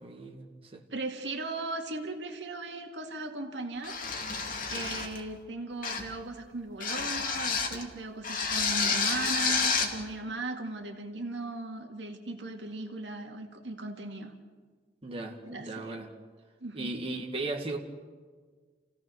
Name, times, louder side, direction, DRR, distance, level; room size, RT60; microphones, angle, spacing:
voice 1, 0.0-0.8 15.0-16.1 16.7-17.8, right 2 dB, 30° right, 1 dB, 1.9 m, -37 dB
voice 2, 0.9-4.0 4.7-14.3 15.5-15.9 16.6-16.9, right 2 dB, 75° right, 4 dB, 2.1 m, -38 dB
sound 1, 3.8-5.2 5.8-6.2 6.8-7.8 8.2-9.9, left 5 dB, 50° left, 2.6 m, -30 dB
29.0 x 16.5 x 6.4 m, 1.5 s
head